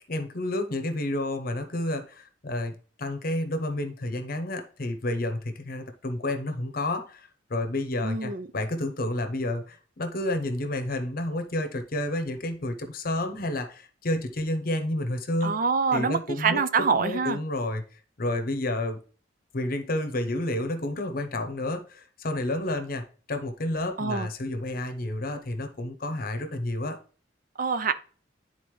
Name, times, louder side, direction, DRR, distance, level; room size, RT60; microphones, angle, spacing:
voice 1, 0.1-15.6 15.9-19.0 19.5-27.0, left 1 dB, 50° left, 0.8 m, -30 dB
voice 2, 8.0-8.5 15.4-17.4 24.0-24.3 27.6-27.9, right 5 dB, 45° right, 0.5 m, -25 dB
10.5 x 4.0 x 3.1 m
head